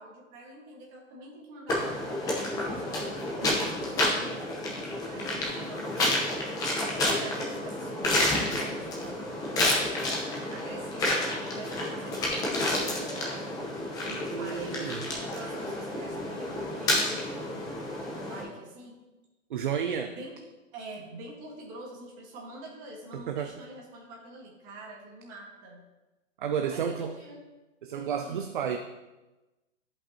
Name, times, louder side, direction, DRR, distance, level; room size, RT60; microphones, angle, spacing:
voice 1, 0.0-4.4 5.1-6.5 6.9-9.9 10.5-13.5 14.0-19.0 19.8-20.4 20.7-25.8 26.7-27.4 28.1-28.5, right 2 dB, 20° right, -1 dB, 1.5 m, -45 dB
sound 1, 1.7-18.4, left 1 dB, 10° left, 0.8 m, -30 dB
voice 2, 14.3-15.0 19.5-20.1 23.1-23.5 26.4-27.2 27.8-28.8, right 7 dB, 40° right, 5 dB, 0.4 m, -31 dB
12.5 x 5.4 x 2.8 m, 1.1 s
hypercardioid pair, 155°, 40 cm